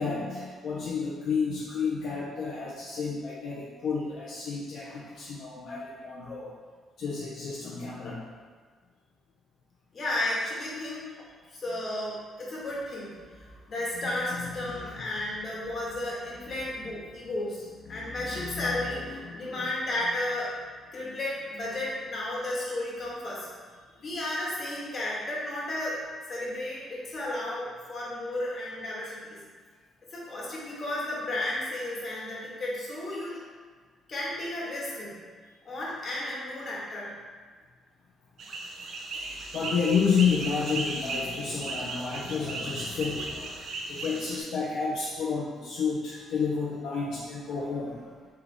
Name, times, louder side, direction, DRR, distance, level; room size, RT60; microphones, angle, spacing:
voice 1, 0.0-6.5 7.0-8.2 13.5-13.6 14.3-15.1 17.9-19.7 39.1-48.3, left 5 dB, 70° left, -5 dB, 0.5 m, -31 dB
voice 2, 9.9-11.1 11.5-13.2 13.7-20.5 20.9-23.5 24.0-26.0 26.3-29.4 30.1-33.4 34.1-35.2 35.6-37.1, left 1 dB, 45° left, -6 dB, 1.5 m, -33 dB
sound 1, 38.4-44.4, right 3 dB, 65° right, 0.5 m, -36 dB
3.8 x 3.3 x 3.4 m, 1.5 s
cardioid pair, 90°, 0 cm